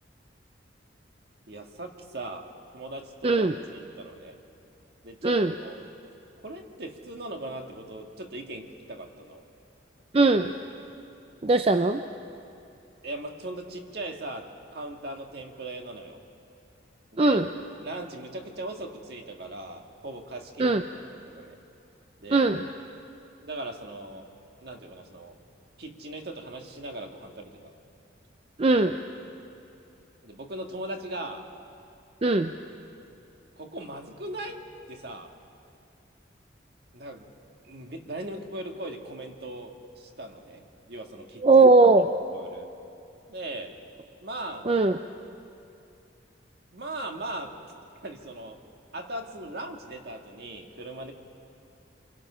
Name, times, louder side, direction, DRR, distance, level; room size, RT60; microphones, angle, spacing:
voice 1, 1.5-2.5 2.7-4.4 5.0-5.9 6.4-9.4 13.0-16.2 17.1-17.4 17.8-20.8 21.3-21.6 22.2-22.5 23.4-24.3 24.6-25.4 25.8-27.8 28.6-28.8 30.2-31.5 33.6-34.6 34.9-35.3 36.9-37.3 37.6-41.5 42.3-42.7 43.3-43.8 44.2-44.7 46.7-47.6 48.0-48.6 48.9-51.1, right 1 dB, 55° right, 3 dB, 1.8 m, -39 dB
voice 2, 3.2-3.5 5.2-5.5 10.1-10.5 11.4-12.0 17.2-17.5 20.6-20.8 22.3-22.6 28.6-29.0 32.2-32.5 41.4-42.1 44.7-45.0, right 3 dB, 30° right, 8 dB, 0.5 m, -19 dB
27.5 x 23.0 x 5.7 m, 2.6 s
head